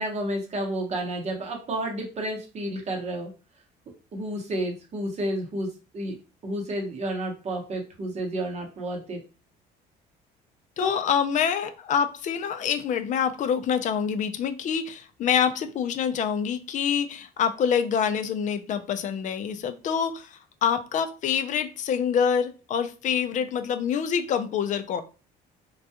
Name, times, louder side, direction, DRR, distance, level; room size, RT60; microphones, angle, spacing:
voice 1, 0.0-3.3 4.1-6.2 6.4-9.2 10.8-10.9, right 1 dB, 40° right, 0.8 m, -31 dB
voice 2, 10.8-25.0, left 7 dB, 45° left, 0.4 m, -26 dB
2.2 x 2.2 x 2.8 m
cardioid pair, 110°, 17 cm